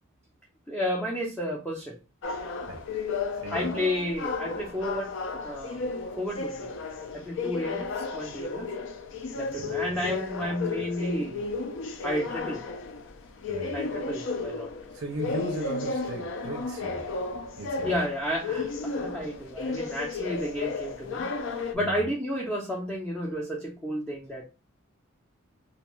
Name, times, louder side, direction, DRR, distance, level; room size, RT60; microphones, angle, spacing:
voice 1, 0.7-2.0 3.5-5.8 6.2-6.7 7.1-8.7 9.4-11.4 12.0-12.6 13.7-14.7 17.8-21.3 21.7-24.4, equal, 5° left, 0.5 m, -32 dB
sound 1, 2.2-21.8, left 4 dB, 60° left, 0.4 m, -33 dB
voice 2, 3.3-3.7 9.5-10.5 13.5-13.8 14.9-17.1 17.6-17.9 21.8-22.0, right 2 dB, 55° right, 0.5 m, -38 dB
2.5 x 2.3 x 2.9 m
head